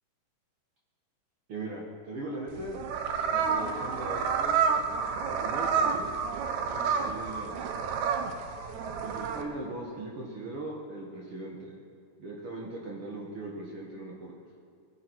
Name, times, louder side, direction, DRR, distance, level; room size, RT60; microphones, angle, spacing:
voice 1, 1.5-2.8 3.2-4.6 5.3-6.1 6.7-7.6 9.0-11.8 12.2-14.3, right 2 dB, 65° right, -2 dB, 1.4 m, -39 dB
sound 1, 2.5-9.4, right 6 dB, 90° right, 1.6 m, -29 dB
18.5 x 14.5 x 4.6 m, 2.4 s
omnidirectional pair, 4.6 m